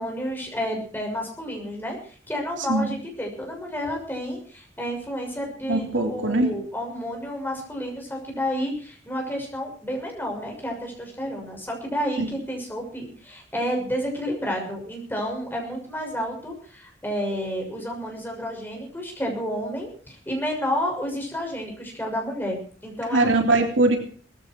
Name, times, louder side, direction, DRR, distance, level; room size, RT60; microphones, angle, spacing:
voice 1, 0.0-23.3, equal, 10° left, 1 dB, 6.4 m, -30 dB
voice 2, 5.7-6.5 12.2-12.3 23.1-24.0, right 2 dB, 75° right, 4 dB, 3.4 m, -21 dB
19.0 x 15.0 x 4.6 m, 0.43 s
head